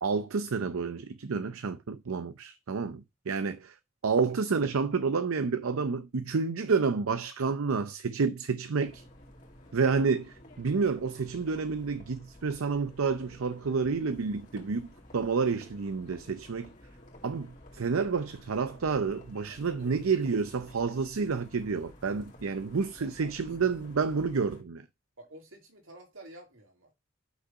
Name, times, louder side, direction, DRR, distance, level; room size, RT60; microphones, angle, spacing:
voice 1, 0.0-3.7 4.0-9.0 9.7-16.7 17.2-24.8, right 5 dB, 90° right, 0.6 m, -29 dB
sound 1, 8.8-24.6, left 1 dB, 35° left, 2.1 m, -52 dB
voice 2, 19.5-19.9 23.0-23.3 25.2-26.9, right 1 dB, 75° right, 2.5 m, -51 dB
6.1 x 5.7 x 5.3 m
head